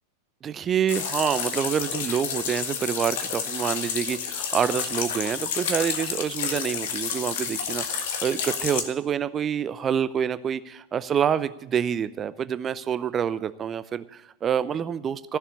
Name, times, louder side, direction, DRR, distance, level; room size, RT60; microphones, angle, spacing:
voice 1, 0.4-15.4, right 8 dB, 25° right, 15 dB, 0.6 m, -27 dB
sound 1, 0.9-8.8, left 7 dB, 55° left, 1.6 m, -30 dB
15.0 x 6.9 x 8.4 m, 0.89 s
figure-of-eight pair, 90°, 0 cm